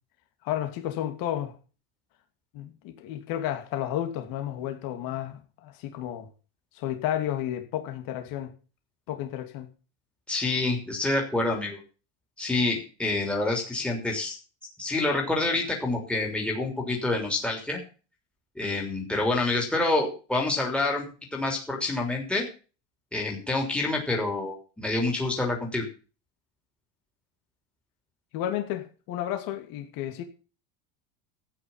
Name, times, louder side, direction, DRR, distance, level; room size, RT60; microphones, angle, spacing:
voice 1, 0.4-1.6 2.5-6.3 6.7-8.5 9.1-9.7 28.3-30.2, left 11 dB, 55° left, 2.8 m, -32 dB
voice 2, 10.3-11.8 12.4-14.4 14.8-17.8 18.5-21.0 21.3-22.5 23.1-25.9, left 2 dB, 5° left, 3.2 m, -27 dB
13.0 x 9.2 x 5.6 m
supercardioid pair, 135°, 40 cm